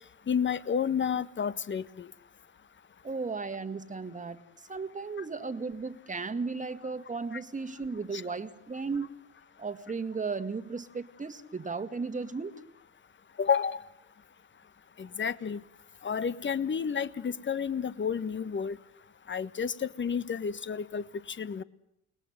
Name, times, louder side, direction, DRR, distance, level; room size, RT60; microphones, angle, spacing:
voice 1, 0.3-2.1 8.1-8.2 13.4-13.8 15.0-15.6 16.0-18.8 19.3-21.6, left 7 dB, 30° left, 15 dB, 1.4 m, -30 dB
voice 2, 3.0-9.1 9.6-12.6, right 4 dB, 20° right, 10 dB, 2.0 m, -35 dB
29.5 x 21.0 x 8.0 m, 0.84 s
figure-of-eight pair, 55°, 38 cm